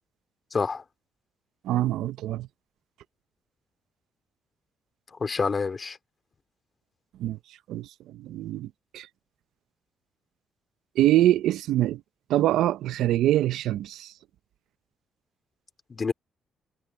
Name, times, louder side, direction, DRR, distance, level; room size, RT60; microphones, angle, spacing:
voice 1, 0.5-0.8 5.1-6.0 15.9-16.1, left 4 dB, 35° left, 2.7 m, -27 dB
voice 2, 1.6-2.5 7.2-7.4 7.7-9.1 11.0-12.0 12.3-14.1, right 13 dB, 85° right, 0.6 m, -24 dB
cardioid pair, 90°, 0 cm